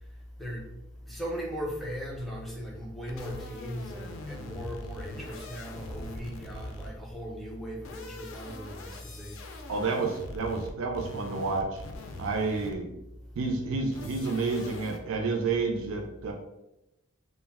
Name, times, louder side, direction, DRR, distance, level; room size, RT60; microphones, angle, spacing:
voice 1, 1.1-9.4, equal, ahead, -3 dB, 0.4 m, -38 dB
sound 1, 3.1-7.1 7.7-13.0 13.9-15.0, left 2 dB, 70° left, 0.4 m, -43 dB
voice 2, 9.7-11.8 12.2-12.9 13.4-16.3, right 4 dB, 75° right, 2 dB, 0.4 m, -30 dB
2.3 x 2.1 x 3.4 m, 0.92 s
head